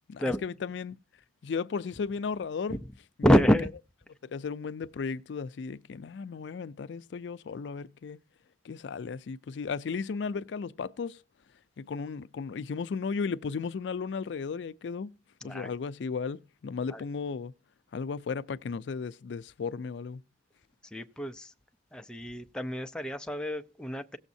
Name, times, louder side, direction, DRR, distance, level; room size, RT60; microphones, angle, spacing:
voice 1, 0.1-1.0 1.4-2.8 3.3-3.4 4.2-8.2 8.6-11.2 11.8-15.2 15.4-17.5 17.9-20.2, left 5 dB, 80° left, 0.4 m, -35 dB
voice 2, 3.2-3.7 15.4-15.7 16.9-17.0 20.9-21.5 21.9-24.2, equal, 5° left, 0.4 m, -27 dB
17.5 x 7.1 x 2.7 m
head